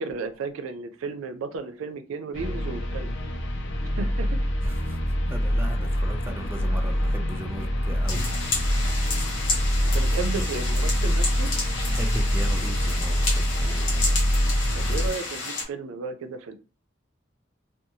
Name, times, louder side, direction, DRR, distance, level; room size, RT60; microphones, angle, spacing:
voice 1, 0.0-3.1 4.0-4.4 9.8-11.5 14.7-16.5, right 4 dB, 85° right, 0.4 m, -34 dB
sound 1, 2.3-15.1, equal, 60° left, 0.6 m, -25 dB
voice 2, 4.6-5.0 5.3-8.2 11.9-14.0, right 1 dB, 10° right, 0.4 m, -36 dB
sound 2, 8.1-15.6, left 3 dB, 90° left, 0.9 m, -31 dB
2.6 x 2.2 x 2.7 m
head